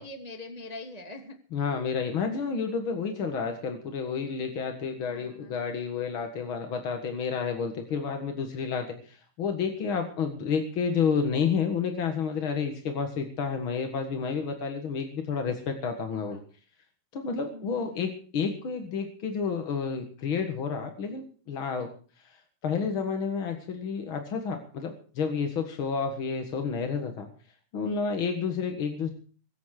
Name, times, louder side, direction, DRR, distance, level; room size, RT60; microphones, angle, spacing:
voice 1, 0.0-1.3 5.0-5.6 16.3-16.4 17.5-18.1 27.8-28.1, left 1 dB, 75° right, 4 dB, 0.3 m, -43 dB
voice 2, 1.5-16.4 17.1-21.9 22.2-22.4 22.6-27.3 27.7-29.1, left 6 dB, 50° left, 5 dB, 1.7 m, -30 dB
22.5 x 8.5 x 6.5 m, 0.41 s
omnidirectional pair, 4.4 m